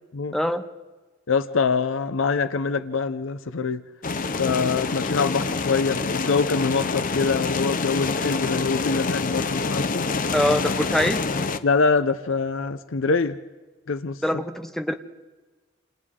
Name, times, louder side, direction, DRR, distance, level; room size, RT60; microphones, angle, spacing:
voice 1, 0.3-0.6 10.3-11.2 14.2-14.9, left 1 dB, ahead, 8 dB, 0.7 m, -23 dB
voice 2, 1.3-3.8 4.4-10.1 11.6-13.4 13.9-14.2, left 4 dB, 80° left, 12 dB, 0.7 m, -24 dB
sound 1, 4.0-11.6, left 4 dB, 45° left, 0.7 m, -26 dB
28.0 x 27.0 x 3.7 m, 1.3 s
head